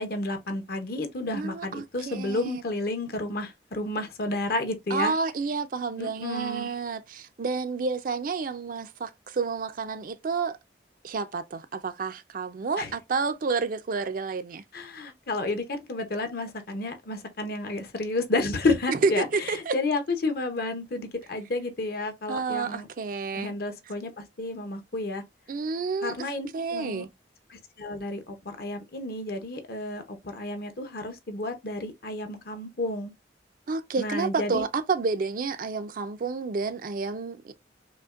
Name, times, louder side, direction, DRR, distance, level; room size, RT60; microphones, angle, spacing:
voice 1, 0.0-5.1 6.0-6.7 12.8-12.9 14.7-22.9 23.3-25.2 26.0-27.1 27.5-33.1 34.0-34.6, left 2 dB, 55° left, 0.8 m, -31 dB
voice 2, 1.3-2.6 4.9-10.6 11.0-14.6 18.9-19.8 22.3-23.5 25.5-27.1 33.7-37.5, right 4 dB, 50° right, 0.4 m, -30 dB
5.0 x 2.1 x 2.4 m
head